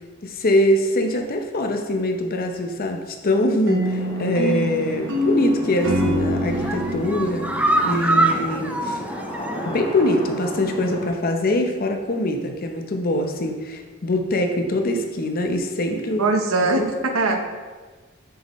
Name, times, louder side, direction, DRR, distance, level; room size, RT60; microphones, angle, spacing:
voice 1, 0.2-9.0 9.7-16.3 16.6-16.9 17.3-17.4, left 1 dB, 45° left, 4 dB, 0.7 m, -23 dB
sound 1, 3.7-8.8, equal, 60° right, 1.1 m, -26 dB
sound 2, 3.8-11.1, equal, 30° left, 1.7 m, -34 dB
sound 3, 5.7-6.1 6.5-9.9 10.2-10.3 10.7-10.8, right 2 dB, 5° right, 0.3 m, -24 dB
voice 2, 16.2-17.4, right 2 dB, 90° right, 5 dB, 0.8 m, -21 dB
6.7 x 6.5 x 3.1 m, 1.4 s
head